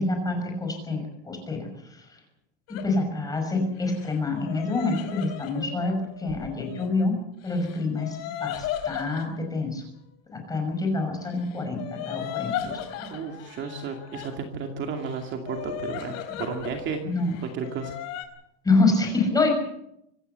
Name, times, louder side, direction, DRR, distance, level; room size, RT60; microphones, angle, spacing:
voice 1, 0.0-1.7 2.7-7.2 7.4-9.8 10.3-12.8 17.0-17.3 18.6-19.6, left 3 dB, 10° left, 3 dB, 5.9 m, -26 dB
sound 1, 2.7-2.9 3.8-6.9 7.4-9.3 11.3-14.4 14.9-16.8 17.1-18.3, left 10 dB, 45° left, 4.2 m, -36 dB
voice 2, 13.0-17.0 17.4-17.9, right 5 dB, 30° right, 4 dB, 2.4 m, -33 dB
25.5 x 15.0 x 8.1 m, 0.78 s
cardioid pair, 175°, 36 cm